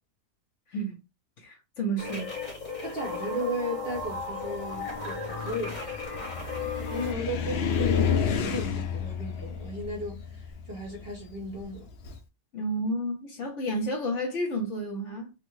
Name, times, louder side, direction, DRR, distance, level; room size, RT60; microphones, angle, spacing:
voice 1, 0.7-1.0 1.4-2.3 12.5-15.3, right 1 dB, 55° left, 1.0 m, -31 dB
sound 1, 2.0-7.1, left 4 dB, 35° left, 1.0 m, -35 dB
voice 2, 2.8-5.8 6.7-11.9, equal, 50° right, 0.8 m, -35 dB
Car, 4.0-12.2, left 7 dB, 85° left, 0.5 m, -31 dB
3.2 x 2.1 x 3.0 m
omnidirectional pair, 1.7 m